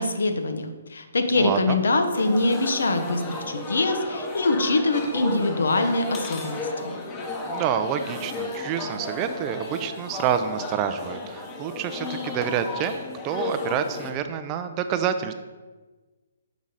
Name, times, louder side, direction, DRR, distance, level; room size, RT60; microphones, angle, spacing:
voice 1, 0.0-6.9, left 2 dB, 75° left, 7 dB, 0.7 m, -24 dB
voice 2, 1.3-1.8 7.5-15.3, right 8 dB, 30° right, 9 dB, 0.4 m, -28 dB
sound 1, 2.1-14.1, left 3 dB, 20° left, 0.8 m, -34 dB
6.0 x 4.0 x 3.9 m, 1.3 s
hypercardioid pair, 140°, 0 cm